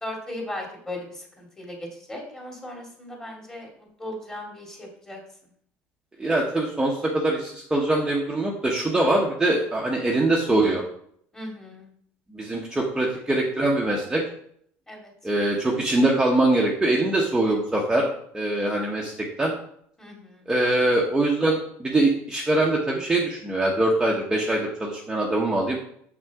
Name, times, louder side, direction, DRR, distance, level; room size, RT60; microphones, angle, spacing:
voice 1, 0.0-5.2 11.3-11.9 14.9-15.1 20.0-20.5, left 1 dB, 15° left, -1 dB, 2.3 m, -37 dB
voice 2, 6.2-10.8 12.3-14.2 15.2-19.5 20.5-25.8, right 2 dB, 10° right, -3 dB, 1.0 m, -23 dB
6.7 x 6.2 x 3.6 m, 0.66 s
cardioid pair, 130°, 5 cm